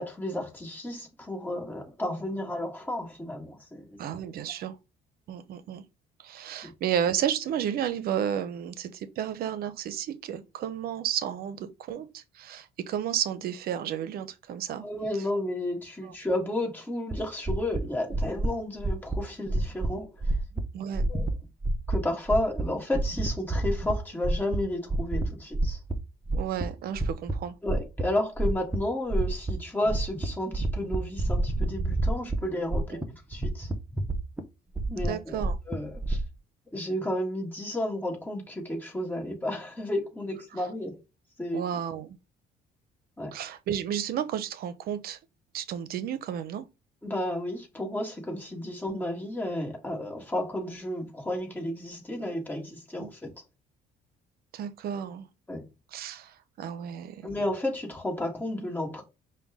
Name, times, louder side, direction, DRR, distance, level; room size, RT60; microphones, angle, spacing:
voice 1, 0.0-3.9 6.6-6.7 14.8-20.1 21.1-21.3 21.9-25.8 27.6-33.0 33.3-33.7 34.9-36.2 36.7-41.0 41.4-41.6 43.2-43.3 47.0-53.3 55.5-55.6 57.2-59.0, left 1 dB, 10° left, 1.5 m, -32 dB
voice 2, 4.0-4.8 5.3-5.8 6.2-14.8 16.0-16.1 20.7-21.1 26.3-27.6 32.9-33.0 35.0-35.6 40.5-40.7 41.5-42.2 43.3-45.2 45.5-46.7 53.0-53.1 54.5-55.3 55.9-57.3, right 9 dB, 65° right, 0.6 m, -32 dB
sound 1, 17.1-17.2 17.5-17.8 18.1-18.5 18.8-19.2 19.5-19.9 20.2-20.6 20.9-21.3 21.6-22.0 22.3-22.6 22.9-24.0 24.2-24.6 24.9-25.3 25.5-26.0 26.3-27.3 27.7-28.0 28.4-28.8 29.1-29.5 29.8-30.3 30.5-32.4 32.7-33.0 33.3-34.4 34.8-36.2, right 2 dB, 5° right, 0.6 m, -28 dB
5.2 x 2.2 x 3.5 m
cardioid pair, 110°, 17 cm